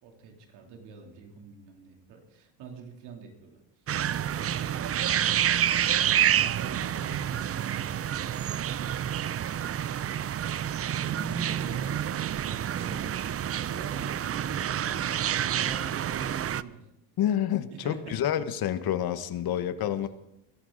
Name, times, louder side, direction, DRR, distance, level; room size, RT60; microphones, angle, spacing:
voice 1, 0.0-3.6 4.0-5.1 6.0-10.0 10.3-13.0 13.7-16.9 17.7-18.2 19.3-19.4 19.8-20.1, right 4 dB, 85° right, 2 dB, 3.2 m, -45 dB
sound 1, 3.9-16.6, right 10 dB, 35° right, 0.5 m, -28 dB
voice 2, 17.2-20.1, left 10 dB, 65° left, 12 dB, 1.2 m, -28 dB
23.0 x 12.0 x 4.0 m, 0.83 s
supercardioid pair, 80°, 39 cm